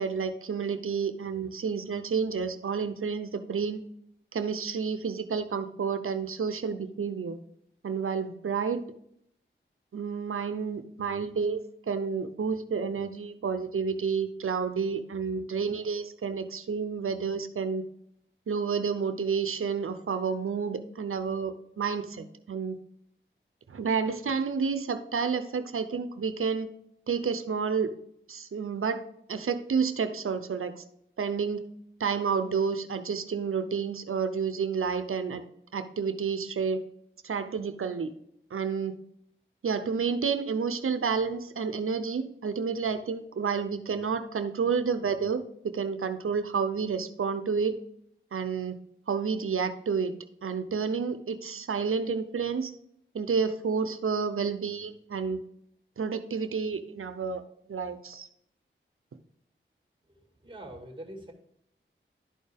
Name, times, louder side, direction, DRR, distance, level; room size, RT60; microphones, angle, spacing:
voice 1, 0.0-3.8 4.3-7.4 7.8-8.8 9.9-11.6 11.9-17.8 18.5-22.8 23.7-26.7 27.1-27.9 28.3-29.0 29.3-30.8 31.2-31.6 32.0-35.4 35.7-36.8 37.2-38.1 38.5-38.9 39.6-47.8 48.3-48.8 49.1-50.1 50.4-52.7 53.1-55.4 56.0-57.4 57.7-58.3, right 5 dB, 85° right, 10 dB, 0.7 m, -30 dB
voice 2, 60.4-61.3, right 1 dB, 25° right, 2 dB, 2.1 m, -43 dB
11.0 x 4.3 x 3.5 m, 0.71 s
wide cardioid pair, 50°, 21 cm